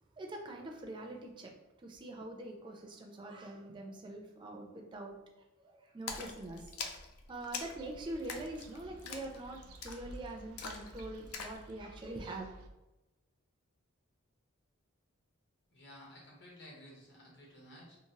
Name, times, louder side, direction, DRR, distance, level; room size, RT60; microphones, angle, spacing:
voice 1, 0.2-1.5 1.8-5.2 5.6-6.7 7.3-12.5, right 2 dB, 20° right, 1 dB, 0.4 m, -44 dB
Splash splatter, 6.1-11.6, left 5 dB, 90° left, 0.4 m, -45 dB
sound 1, 7.7-12.7, right 1 dB, 90° right, 0.4 m, -54 dB
voice 2, 15.7-18.0, left 1 dB, 55° left, -2 dB, 0.9 m, -54 dB
2.8 x 2.7 x 2.8 m, 1.0 s
head